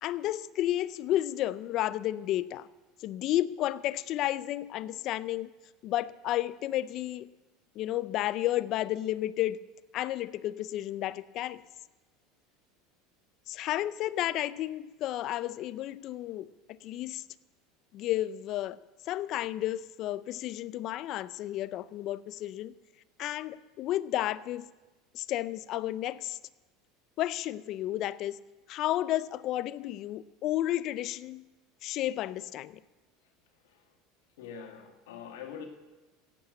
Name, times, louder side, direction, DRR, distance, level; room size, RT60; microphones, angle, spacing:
voice 1, 0.0-2.7 3.0-5.5 5.8-7.3 7.8-9.6 9.9-11.6 13.5-16.5 16.8-17.2 17.9-18.8 19.1-22.7 23.2-24.6 25.1-26.4 27.2-28.4 28.7-31.4 31.8-32.8, left 14 dB, 50° left, 17 dB, 0.6 m, -32 dB
voice 2, 34.4-35.7, left 7 dB, 90° left, 4 dB, 2.1 m, -43 dB
15.5 x 8.5 x 7.7 m, 1.2 s
supercardioid pair, 125°, 0 cm